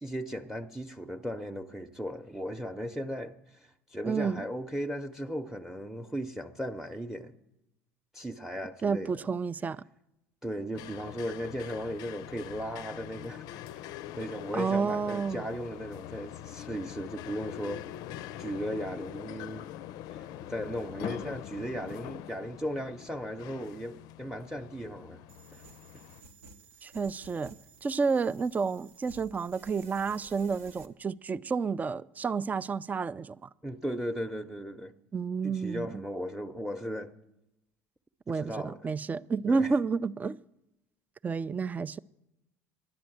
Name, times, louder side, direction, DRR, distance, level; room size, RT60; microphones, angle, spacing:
voice 1, 0.0-7.3 8.1-9.2 10.4-13.6 14.1-17.9 18.4-19.7 20.1-25.2 25.5-25.6 25.9-26.0 33.6-34.9 35.4-37.1 38.3-38.8 39.5-39.7, equal, 5° right, 0.8 m, -37 dB
voice 2, 4.0-4.4 8.8-9.8 14.5-15.5 26.8-27.6 27.8-33.5 35.1-36.0 38.3-40.4 41.2-42.0, right 5 dB, 20° right, 0.4 m, -30 dB
sound 1, 10.7-26.2, left 11 dB, 60° left, 0.5 m, -43 dB
sound 2, 25.3-30.9, right 4 dB, 90° right, 1.1 m, -54 dB
10.5 x 10.5 x 7.9 m
hypercardioid pair, 75°, 7 cm